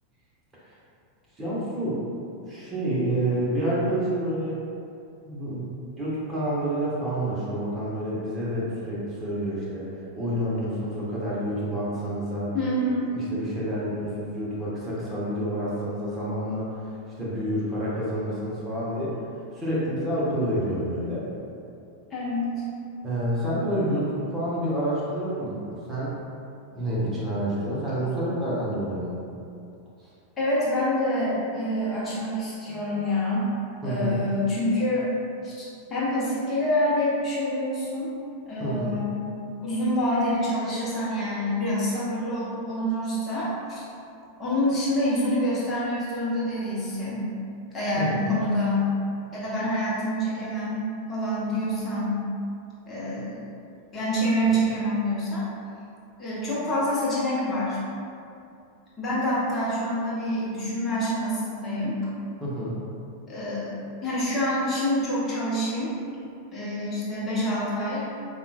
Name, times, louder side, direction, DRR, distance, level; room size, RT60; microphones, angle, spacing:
voice 1, 1.4-2.0 2.5-4.6 5.2-9.8 10.1-12.5 13.1-16.7 17.2-19.1 19.5-21.3 23.0-26.1 26.7-29.1 33.8-34.2 38.6-39.0 47.9-48.2 62.4-62.8, right 1 dB, 15° right, -8 dB, 1.1 m, -28 dB
voice 2, 12.5-13.1 22.1-22.6 30.4-33.5 33.8-35.1 35.4-35.5 35.9-38.1 38.5-39.2 39.6-43.5 43.8-43.9 44.4-47.3 47.7-48.9 49.3-52.2 52.9-53.4 53.9-55.4 56.2-57.8 59.0-62.0 63.3-66.0 66.5-68.1, left 1 dB, 25° left, -9 dB, 1.1 m, -26 dB
5.3 x 2.4 x 2.4 m, 2.6 s
figure-of-eight pair, 90°, 0 cm